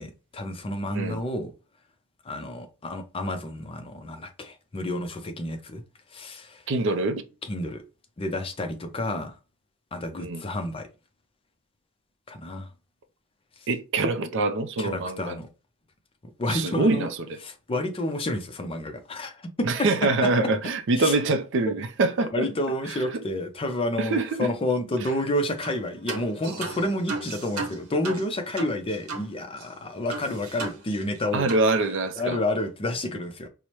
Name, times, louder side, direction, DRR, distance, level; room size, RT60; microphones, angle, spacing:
voice 1, 0.0-1.5 2.2-5.8 6.1-6.6 7.4-7.8 8.2-9.3 9.9-10.9 12.3-12.7 14.8-15.5 16.4-17.1 17.4-19.7 21.0-21.1 22.3-31.5 32.2-33.5, left 1 dB, 25° left, 0.5 m, -30 dB
voice 2, 6.7-7.2 10.2-10.4 13.7-15.4 16.5-17.4 19.6-22.5 23.1-23.2 24.0-24.5 31.3-32.4, right 3 dB, 60° right, 0.4 m, -25 dB
sound 1, 25.6-25.8 26.1-29.3 29.6-29.7 30.1-31.2 31.5-31.7, right 3 dB, 80° right, 0.9 m, -35 dB
4.6 x 2.0 x 2.8 m
head